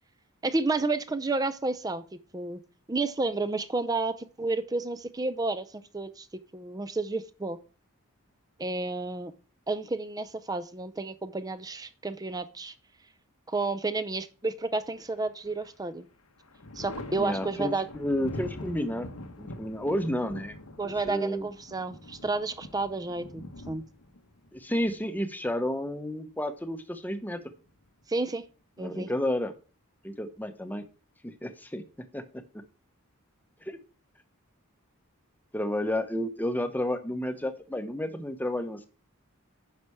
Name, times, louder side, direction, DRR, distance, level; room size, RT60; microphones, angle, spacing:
voice 1, 0.4-2.0 2.3-2.6 2.9-5.7 5.9-6.3 6.5-7.6 8.6-9.3 9.7-12.7 13.5-16.1 16.8-17.9 20.8-23.8 28.1-28.4 28.8-29.1, right 3 dB, 15° right, 14 dB, 0.5 m, -31 dB
Thunder, 15.0-15.7 16.1-25.7 27.2-28.0, left 1 dB, 85° left, 1.1 m, -44 dB
voice 2, 17.2-19.1 19.4-20.6 20.8-21.5 24.5-27.4 28.8-29.5 30.0-30.8 31.2-31.8 32.1-32.2 33.6-33.8 35.5-38.9, left 1 dB, 10° left, 9 dB, 0.8 m, -31 dB
9.8 x 5.9 x 4.8 m, 0.35 s
head